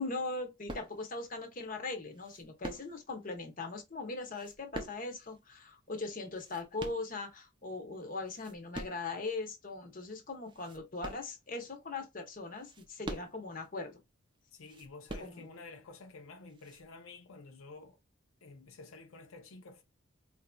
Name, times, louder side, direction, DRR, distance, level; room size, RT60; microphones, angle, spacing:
voice 1, 0.0-14.0 15.2-15.5, left 3 dB, 40° left, 0.8 m, -40 dB
sound 1, 0.7-1.3 2.1-3.2 4.2-5.4 6.1-7.5 8.0-9.1 9.7-9.8 10.4-11.8 12.5-13.7 14.6-15.7 16.5-16.8, right 1 dB, 25° right, 0.5 m, -45 dB
voice 2, 14.5-18.0 18.4-19.8, left 3 dB, 90° left, 0.6 m, -51 dB
4.0 x 2.6 x 2.2 m
head